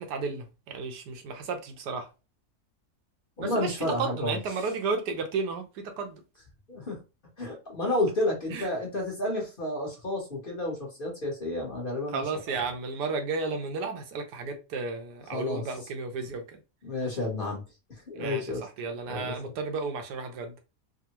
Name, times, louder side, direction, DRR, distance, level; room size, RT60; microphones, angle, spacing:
voice 1, 0.0-2.1 3.4-6.2 8.5-8.7 12.1-16.4 18.2-20.5, right 4 dB, 90° right, 1.3 m, -33 dB
voice 2, 3.4-4.4 6.7-6.9 7.4-12.2 12.5-12.6 15.3-15.6 16.2-16.3 16.8-17.6 18.1-18.6 19.1-19.5, left 1 dB, 40° left, 0.9 m, -31 dB
3.5 x 2.1 x 2.8 m
omnidirectional pair, 1.7 m